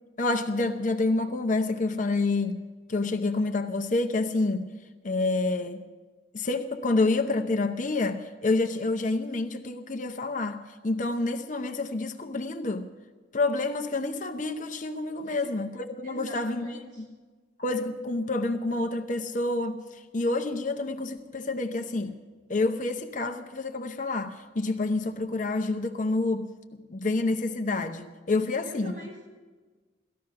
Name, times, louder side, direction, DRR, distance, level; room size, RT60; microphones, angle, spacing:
voice 1, 0.2-2.6 2.9-4.7 5.0-5.8 6.3-12.9 13.3-16.8 17.6-22.1 22.5-26.5 26.9-28.9, left 2 dB, 40° left, 7 dB, 0.8 m, -28 dB
voice 2, 15.2-15.5 16.0-17.1 28.3-29.3, equal, 45° right, -3 dB, 5.5 m, -44 dB
17.5 x 14.0 x 5.8 m, 1.4 s
head